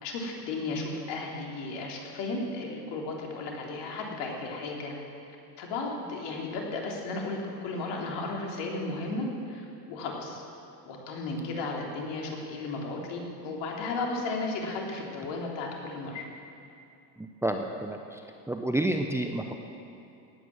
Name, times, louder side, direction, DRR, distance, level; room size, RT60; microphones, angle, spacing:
voice 1, 0.0-4.9 5.6-10.4 10.8-16.2, left 3 dB, 55° left, -1 dB, 3.6 m, -34 dB
voice 2, 17.2-18.2 18.5-19.5, right 1 dB, 5° right, 4 dB, 0.8 m, -30 dB
18.0 x 9.2 x 7.4 m, 2.6 s
hypercardioid pair, 90°, 49 cm